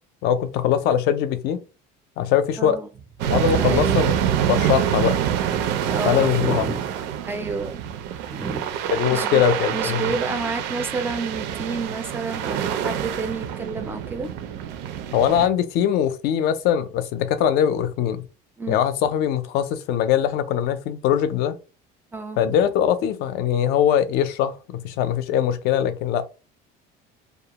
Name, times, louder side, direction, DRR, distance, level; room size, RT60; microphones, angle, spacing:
voice 1, 0.2-1.6 2.2-2.8 3.2-4.2 4.5-5.2 6.0-6.7 8.9-10.1 15.1-18.3 18.7-21.6 22.4-26.2, left 9 dB, 60° left, 0.4 m, -21 dB
voice 2, 2.6-2.9 3.6-4.0 5.6-6.8 7.2-7.8 8.3-9.4 9.7-14.3 18.6-18.8 22.1-22.5, right 3 dB, 10° right, 0.3 m, -30 dB
sound 1, 3.2-15.5, right 9 dB, 70° right, 0.5 m, -26 dB
2.3 x 2.1 x 2.9 m
cardioid pair, 155°, 18 cm